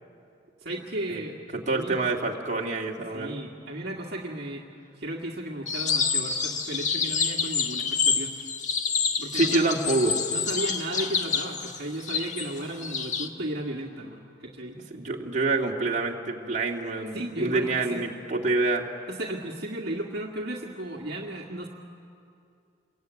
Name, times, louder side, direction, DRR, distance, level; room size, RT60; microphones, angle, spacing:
voice 1, 0.6-1.4 1.7-2.0 3.1-4.6 5.0-8.3 9.2-9.7 10.3-14.8 17.1-18.0 19.1-21.7, right 1 dB, 55° right, -1 dB, 2.0 m, -34 dB
voice 2, 1.5-3.4 9.3-10.3 14.9-18.8, right 3 dB, 40° right, -1 dB, 2.5 m, -27 dB
sound 1, 5.7-13.3, left 6 dB, 40° left, 1.5 m, -28 dB
28.0 x 23.0 x 9.4 m, 2.5 s
head